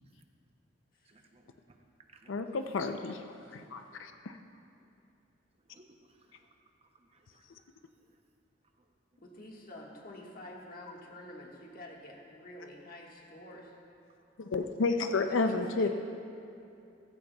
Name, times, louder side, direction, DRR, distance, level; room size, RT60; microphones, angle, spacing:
voice 1, 1.1-2.5 4.5-4.9 5.7-6.5 6.8-7.6 8.0-8.2, right 2 dB, 30° right, 4 dB, 0.7 m, -63 dB
voice 2, 2.3-3.2 3.5-4.4 14.4-15.9, left 3 dB, 80° left, 7 dB, 0.5 m, -31 dB
voice 3, 9.2-13.7 15.1-15.9, left 1 dB, 45° left, -1 dB, 1.5 m, -48 dB
15.5 x 14.5 x 2.3 m, 2.7 s
head